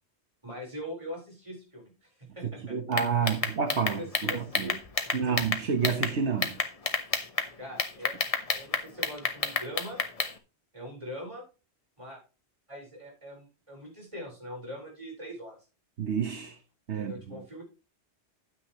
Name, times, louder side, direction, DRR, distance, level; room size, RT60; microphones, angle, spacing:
voice 1, 0.4-2.8 3.2-3.4 3.8-4.8 5.0-5.4 7.6-8.2 8.5-10.0 10.7-11.4 12.0-12.2 12.7-15.6 16.9-17.6, equal, 30° right, 4.7 m, -42 dB
voice 2, 2.7-4.7 5.1-6.6 16.0-16.6 16.9-17.4, right 6 dB, 80° right, 1.4 m, -29 dB
sound 1, 2.9-6.1 6.4-7.5 7.8-10.3, left 3 dB, 35° left, 1.2 m, -29 dB
9.9 x 9.4 x 3.1 m
omnidirectional pair, 1.1 m